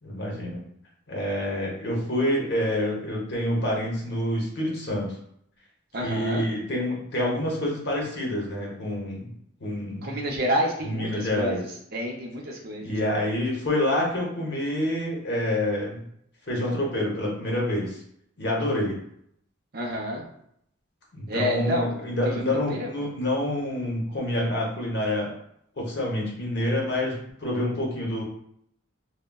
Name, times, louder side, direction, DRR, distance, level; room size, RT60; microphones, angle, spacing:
voice 1, 0.0-0.6 1.1-5.1 6.0-9.3 9.6-10.1 10.8-11.6 12.8-16.0 16.5-18.0 18.4-19.0 21.1-25.3 25.8-28.2, left 1 dB, 50° left, -2 dB, 0.8 m, -27 dB
voice 2, 5.9-6.4 10.0-11.6 11.9-12.9 19.7-20.2 21.3-21.9 22.7-22.9, equal, 45° right, 0 dB, 0.5 m, -29 dB
3.6 x 2.1 x 2.2 m, 0.70 s
head